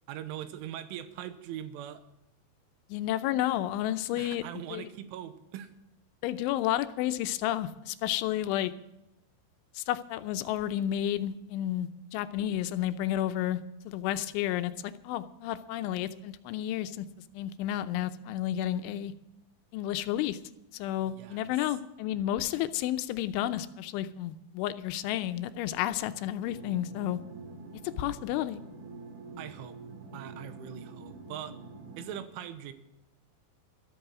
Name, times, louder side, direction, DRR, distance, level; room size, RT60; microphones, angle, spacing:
voice 1, 0.1-2.0 4.2-5.7 21.1-21.5 29.4-29.8 30.1-31.6 32.0-32.7, right 11 dB, 85° right, 11 dB, 3.5 m, -41 dB
voice 2, 2.9-4.4 4.7-4.9 6.2-8.7 9.8-17.1 17.3-19.1 19.7-20.4 20.7-27.2 28.0-28.6, left 12 dB, 85° left, 11 dB, 3.1 m, -31 dB
sound 1, 26.5-32.2, right 3 dB, 60° right, 3.5 m, -46 dB
13.5 x 13.0 x 6.1 m, 0.91 s
omnidirectional pair, 5.5 m